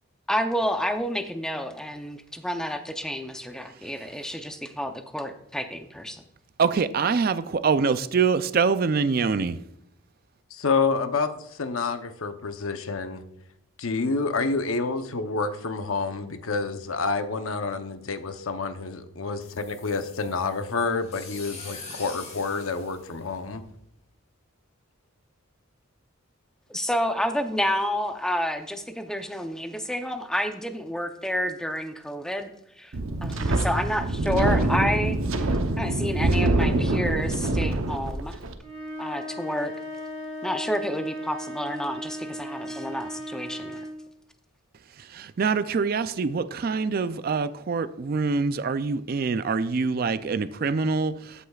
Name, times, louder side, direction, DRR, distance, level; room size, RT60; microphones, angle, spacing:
voice 1, 0.3-6.2 26.7-32.5 32.8-32.9 33.2-35.5 35.8-38.4 39.0-39.7 40.4-43.8, equal, 5° left, 6 dB, 0.6 m, -29 dB
voice 2, 6.6-9.6 45.1-51.5, right 5 dB, 45° right, 13 dB, 0.4 m, -25 dB
voice 3, 10.5-13.2 13.8-23.6, left 4 dB, 75° left, 8 dB, 0.8 m, -28 dB
sound 1, 19.4-23.8, left 4 dB, 35° left, 2.6 m, -44 dB
Wind, 32.9-38.5, right 2 dB, 75° right, 0.8 m, -25 dB
sound 2, 38.6-44.0, equal, 30° right, 2.6 m, -37 dB
13.5 x 8.3 x 2.4 m, 0.77 s
head